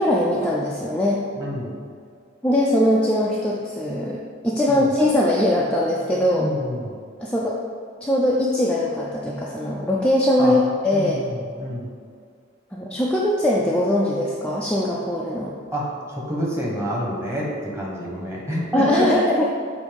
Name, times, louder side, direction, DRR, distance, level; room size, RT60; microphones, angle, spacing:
voice 1, 0.0-1.2 2.4-6.5 7.2-7.6 8.0-11.2 12.7-15.5 18.7-19.5, left 1 dB, 5° left, -5 dB, 0.5 m, -21 dB
voice 2, 1.4-1.8 4.7-4.9 6.3-7.0 10.4-10.6 10.9-11.9 15.7-19.1, equal, 15° right, -4 dB, 1.3 m, -28 dB
8.2 x 2.8 x 5.3 m, 2.1 s
head